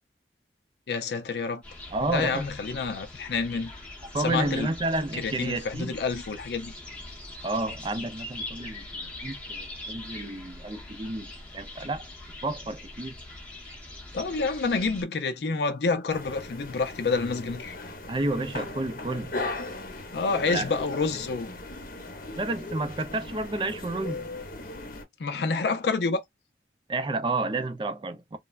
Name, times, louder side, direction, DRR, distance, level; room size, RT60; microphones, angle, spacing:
voice 1, 0.9-1.6 2.1-3.7 4.2-4.7 5.2-6.7 14.1-17.7 20.1-21.5 25.2-26.2, left 4 dB, 70° left, 0.5 m, -28 dB
sound 1, 1.6-15.0, left 2 dB, 5° left, 0.8 m, -42 dB
voice 2, 1.9-2.4 4.1-5.9 7.4-12.1 12.4-13.2 18.1-19.4 20.5-20.6 22.4-24.3 26.9-28.4, right 2 dB, 25° right, 0.4 m, -31 dB
sound 2, 16.1-25.0, left 2 dB, 50° left, 0.8 m, -38 dB
3.3 x 2.1 x 2.3 m
head